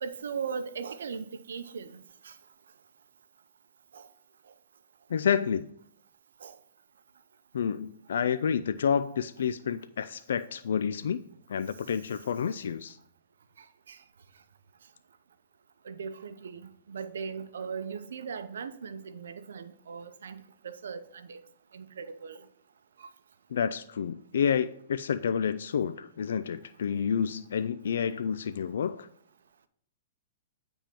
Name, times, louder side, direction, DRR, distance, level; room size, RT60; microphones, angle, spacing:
voice 1, 0.0-2.0 2.2-2.3 3.9-4.1 6.4-6.5 13.9-14.0 15.8-21.4 21.7-22.4 23.0-23.1, right 6 dB, 85° right, 0.6 m, -39 dB
voice 2, 5.1-5.7 7.5-11.2 11.5-13.0 23.5-29.1, left 7 dB, 80° left, 0.3 m, -29 dB
8.9 x 3.5 x 5.9 m
hypercardioid pair, 140°, 0 cm